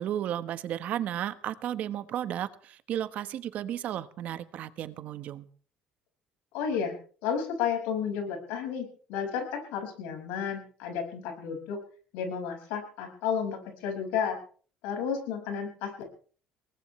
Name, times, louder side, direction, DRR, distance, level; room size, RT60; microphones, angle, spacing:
voice 1, 0.0-5.5, right 11 dB, 65° right, 12 dB, 1.2 m, -34 dB
voice 2, 6.5-6.9 7.2-11.8 12.1-14.4 14.8-16.0, left 7 dB, 90° left, 4 dB, 5.8 m, -32 dB
23.0 x 19.0 x 3.3 m, 0.42 s
supercardioid pair, 90°, 3 cm